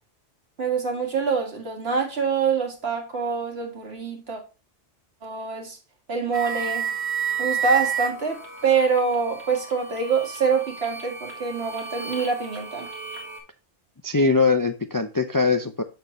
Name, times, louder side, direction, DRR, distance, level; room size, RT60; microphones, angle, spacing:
voice 1, 0.6-4.4 5.2-5.8 6.1-6.8 7.4-12.9, right 5 dB, 65° right, 2.1 m, -25 dB
sound 1, 6.3-13.4, right 7 dB, 85° right, 2.2 m, -31 dB
voice 2, 14.0-15.8, left 4 dB, 30° left, 0.4 m, -21 dB
6.8 x 6.5 x 3.0 m
omnidirectional pair, 1.1 m